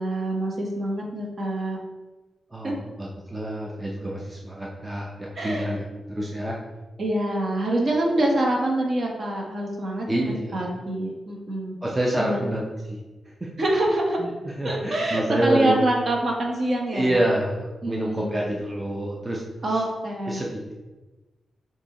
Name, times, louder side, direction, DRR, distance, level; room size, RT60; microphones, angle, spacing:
voice 1, 0.0-1.8 2.6-2.7 5.4-5.6 7.0-11.7 12.2-12.4 13.6-14.2 14.6-17.2 17.8-18.3 19.6-20.4, right 1 dB, 45° right, -1 dB, 1.0 m, -25 dB
voice 2, 2.5-6.5 10.1-10.7 11.8-13.0 13.4-13.5 14.2-15.8 16.9-19.4 19.7-19.8 20.3-20.5, right 1 dB, 15° right, -3 dB, 0.5 m, -27 dB
6.5 x 2.7 x 2.9 m, 1.2 s
cardioid pair, 105°, 0 cm